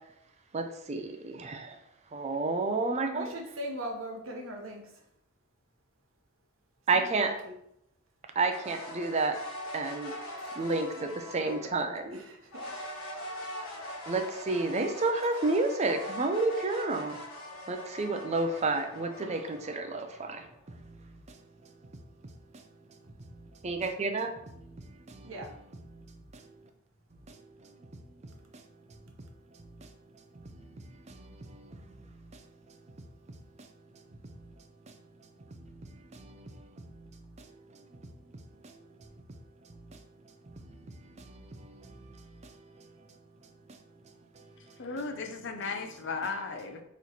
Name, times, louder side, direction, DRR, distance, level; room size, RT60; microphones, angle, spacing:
voice 1, 0.5-1.8 2.1-3.3 6.9-7.3 8.4-9.4 9.7-10.1 10.6-12.2 14.1-17.2 17.7-20.5 23.6-24.3 24.6-24.8 25.1-25.3 25.9-26.1 26.3-26.4 27.3-27.4 29.8-29.9 30.4-31.8 35.6-35.8 36.1-37.1 37.4-37.5 38.6-38.8 39.9-40.0 40.6-42.2 42.4-42.5 44.4-44.5, right 3 dB, 30° right, 6 dB, 0.5 m, -31 dB
voice 2, 3.1-5.0 6.9-7.5 11.6-11.9 12.1-13.0 13.4-13.7 25.2-25.5, equal, 70° right, 2 dB, 1.0 m, -41 dB
sound 1, 8.5-11.8 12.5-20.7, equal, 80° left, 1.7 m, -42 dB
voice 3, 44.8-46.8, left 4 dB, 60° left, 5 dB, 0.6 m, -35 dB
4.0 x 3.1 x 4.2 m, 0.77 s
head